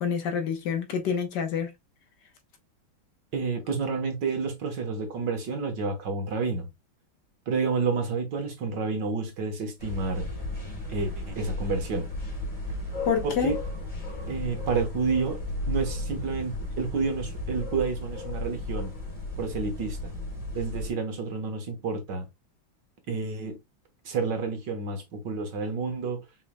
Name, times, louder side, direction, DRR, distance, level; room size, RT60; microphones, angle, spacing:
voice 1, 0.0-1.7 13.0-13.5, left 6 dB, 65° left, 1.4 m, -27 dB
voice 2, 3.3-6.7 7.5-10.3 10.9-12.1 13.4-13.6 14.3-15.4 15.7-18.9 19.4-20.2 20.5-22.3 23.1-23.6 24.1-26.2, right 4 dB, 65° right, 1.8 m, -29 dB
sound 1, 9.8-20.9, left 1 dB, 25° left, 2.2 m, -34 dB
5.9 x 3.7 x 2.2 m
omnidirectional pair, 2.2 m